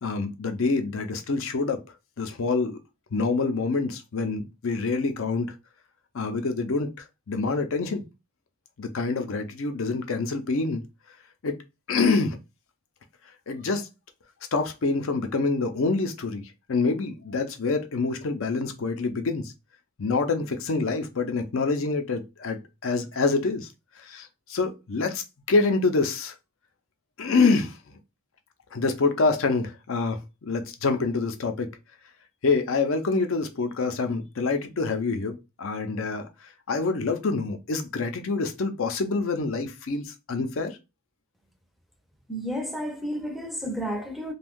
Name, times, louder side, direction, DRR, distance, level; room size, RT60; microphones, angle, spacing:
voice 1, 0.0-1.8 2.2-2.8 3.1-5.5 6.1-6.9 7.3-8.0 8.8-10.8 11.4-11.6 11.9-12.4 13.5-13.9 14.5-16.4 16.7-19.5 20.0-23.7 24.0-26.3 27.2-27.8 28.7-31.7 32.4-36.3 36.7-40.8, left 3 dB, 65° left, 0.5 m, -26 dB
voice 2, 42.3-44.3, equal, ahead, 0.5 m, -31 dB
2.6 x 2.2 x 3.5 m
head